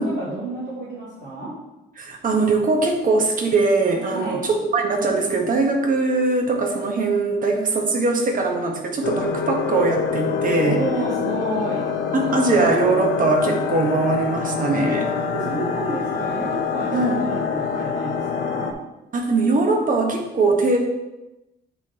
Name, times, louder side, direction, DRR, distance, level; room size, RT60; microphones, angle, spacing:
voice 1, 0.0-1.5 4.1-4.5 10.6-11.9 14.8-18.7, right 2 dB, 75° right, -11 dB, 2.4 m, -30 dB
voice 2, 2.0-10.8 12.1-15.0 16.9-17.2 19.1-20.8, right 3 dB, 45° right, 1 dB, 1.3 m, -21 dB
sound 1, 9.0-18.7, left 6 dB, 75° left, 0.7 m, -26 dB
9.6 x 3.9 x 3.0 m, 0.98 s
cardioid pair, 90°, 20 cm